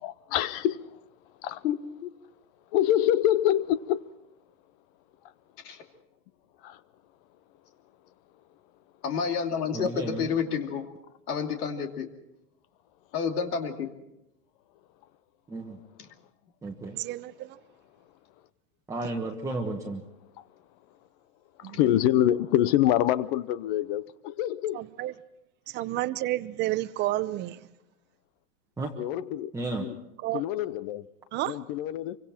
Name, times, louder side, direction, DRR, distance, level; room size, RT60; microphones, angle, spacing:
voice 1, 0.0-0.9 1.4-1.6 2.7-4.0 6.6-6.8 21.6-24.8 29.0-29.5 29.8-30.0 30.3-31.1 31.5-32.2, left 12 dB, 35° left, 0.7 m, -26 dB
voice 2, 1.6-2.1 5.6-5.8 9.0-10.9 11.3-12.1 13.1-13.9, left 6 dB, 75° left, 2.9 m, -29 dB
voice 3, 9.7-10.3 15.5-15.8 16.6-17.0 18.9-20.0 28.8-28.9 29.5-29.9, right 2 dB, 5° right, 1.3 m, -33 dB
voice 4, 16.9-17.6 21.6-21.8 24.7-25.1 25.7-27.6 30.2-30.4 31.3-31.6, right 16 dB, 25° right, 0.7 m, -30 dB
26.5 x 24.5 x 4.4 m
hypercardioid pair, 135°, 46 cm